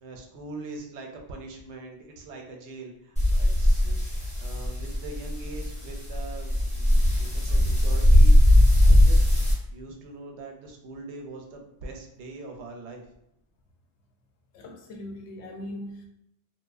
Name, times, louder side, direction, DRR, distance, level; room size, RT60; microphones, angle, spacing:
voice 1, 0.0-4.0 4.4-8.3 8.8-9.4 9.7-13.0, right 3 dB, 85° right, 2 dB, 0.9 m, -42 dB
sound 1, 3.2-9.5, left 1 dB, 10° left, 0.7 m, -20 dB
voice 2, 14.5-16.1, left 1 dB, 85° left, 2 dB, 0.9 m, -39 dB
2.7 x 2.1 x 2.4 m, 0.79 s
omnidirectional pair, 1.1 m